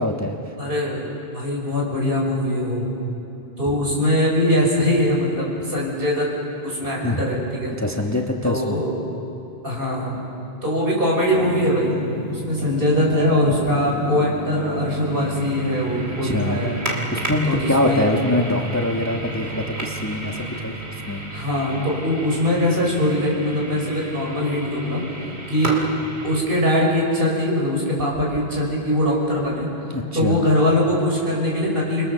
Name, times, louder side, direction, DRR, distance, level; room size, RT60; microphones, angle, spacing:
voice 1, 0.0-0.4 6.8-7.3 7.8-8.8 16.2-16.6 17.1-20.8 21.1-21.2 29.9-30.4, left 1 dB, 15° left, 1 dB, 1.4 m, -24 dB
voice 2, 0.6-2.9 3.6-6.4 6.6-7.7 8.4-9.0 9.6-10.2 10.6-12.0 12.3-16.8 17.4-18.1 21.3-25.0 25.5-25.8 26.2-29.7 30.1-32.1, left 1 dB, 60° right, -3 dB, 5.7 m, -22 dB
sound 1, 11.3-26.4, right 2 dB, 90° right, 3.0 m, -32 dB
29.0 x 21.5 x 6.8 m, 2.8 s
omnidirectional pair, 1.1 m